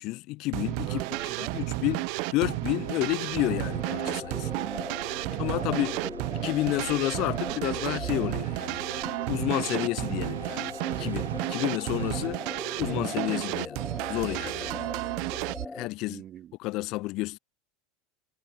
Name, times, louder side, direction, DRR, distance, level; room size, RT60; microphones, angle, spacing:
voice 1, 0.0-1.0 1.4-4.5 5.4-6.0 6.3-8.8 9.3-10.7 11.0-12.4 12.8-13.8 14.1-14.9 15.7-16.2 16.6-17.4, left 21 dB, 55° left, 0.6 m, -30 dB
sound 1, 0.5-15.7, right 33 dB, 60° right, 1.1 m, -32 dB
voice 2, 0.8-1.6 4.4-4.8 5.3-6.5 16.1-16.6, right 11 dB, 40° right, 3.3 m, -45 dB
sound 2, 0.8-12.3, right 9 dB, 85° right, 6.5 m, -44 dB
sound 3, 3.4-15.9, left 3 dB, 15° left, 2.4 m, -40 dB
hypercardioid pair, 85°, 0 cm